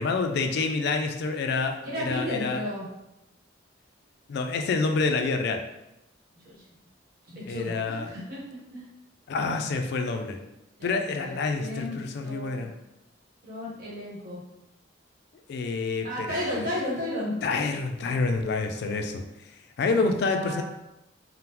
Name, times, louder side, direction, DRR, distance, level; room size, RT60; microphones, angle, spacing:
voice 1, 0.0-2.6 4.3-5.6 7.5-8.1 9.3-10.4 10.8-12.7 15.5-16.4 17.4-19.2 19.8-20.6, left 4 dB, 60° left, 6 dB, 0.3 m, -27 dB
voice 2, 1.8-2.9 6.3-6.6 7.2-8.9 10.8-12.7 13.4-14.4 16.0-17.3 19.8-20.6, left 1 dB, 50° right, -5 dB, 1.1 m, -34 dB
3.6 x 2.0 x 2.9 m, 0.90 s
head